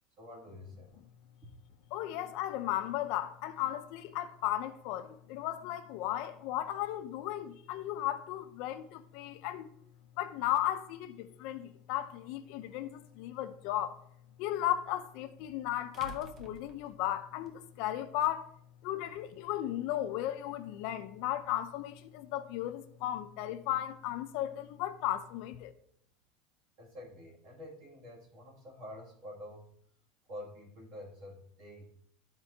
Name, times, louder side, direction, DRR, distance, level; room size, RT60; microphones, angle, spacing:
voice 1, 0.2-1.0 1.4-1.5 26.8-29.7 30.3-31.9, left 1 dB, 50° right, 2.4 m, -48 dB
voice 2, 1.9-9.7 10.2-14.0 14.4-18.5 18.8-25.7, left 12 dB, 50° left, 0.5 m, -35 dB
sound 1, 12.1-12.2 14.8-14.9 15.9-17.5, right 3 dB, 25° right, 0.5 m, -50 dB
12.5 x 4.3 x 2.8 m
supercardioid pair, 175°, 0 cm